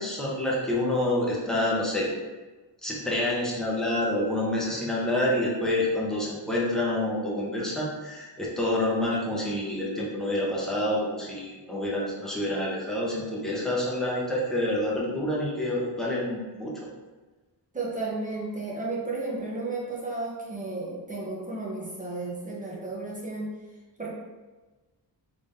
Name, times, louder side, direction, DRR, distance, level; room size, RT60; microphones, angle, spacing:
voice 1, 0.0-2.1 2.8-16.7, left 1 dB, ahead, -5 dB, 0.8 m, -28 dB
voice 2, 17.7-23.5 24.0-24.1, right 3 dB, 20° right, -5 dB, 0.9 m, -33 dB
3.7 x 3.5 x 2.6 m, 1.2 s
wide cardioid pair, 135°, 43 cm